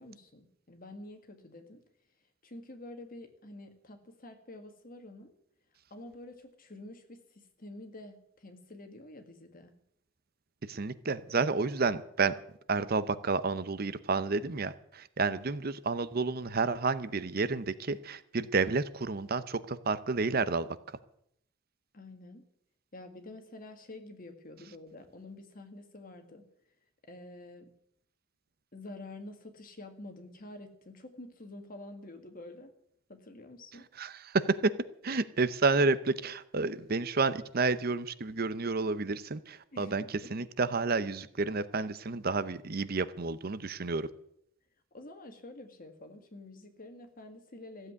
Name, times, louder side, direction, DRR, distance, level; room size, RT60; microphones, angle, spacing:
voice 1, 0.0-1.8 2.4-5.3 5.9-9.7 21.9-22.4 22.9-26.4 27.1-27.7 28.7-32.7 33.1-33.9 39.7-40.3 44.9-47.9, left 2 dB, 45° left, 6 dB, 1.9 m, -48 dB
voice 2, 10.7-12.3 12.7-20.7 34.0-34.7 35.0-44.1, right 4 dB, 50° right, 14 dB, 0.7 m, -30 dB
15.0 x 7.9 x 9.6 m, 0.72 s
head